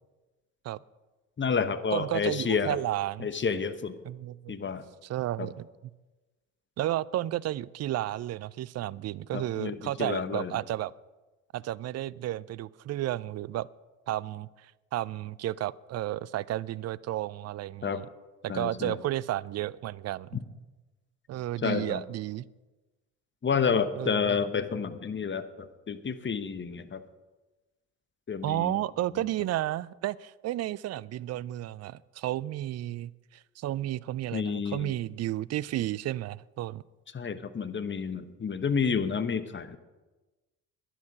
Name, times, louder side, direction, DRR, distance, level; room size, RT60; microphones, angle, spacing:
voice 1, 1.4-2.8 3.2-4.0 4.5-4.8 5.4-5.5 9.3-10.6 17.8-18.0 18.5-19.0 21.6-22.0 23.4-27.0 28.3-28.8 29.1-29.2 34.3-35.0 37.1-39.8, left 6 dB, 25° left, 11 dB, 1.1 m, -30 dB
voice 2, 1.9-3.3 4.1-4.7 5.0-5.7 6.8-10.9 11.5-13.7 14.1-18.1 18.4-20.4 21.3-22.5 24.0-24.4 28.4-36.8, right 14 dB, 40° right, 22 dB, 0.4 m, -32 dB
11.5 x 10.5 x 6.0 m, 1.2 s
hypercardioid pair, 55°, 41 cm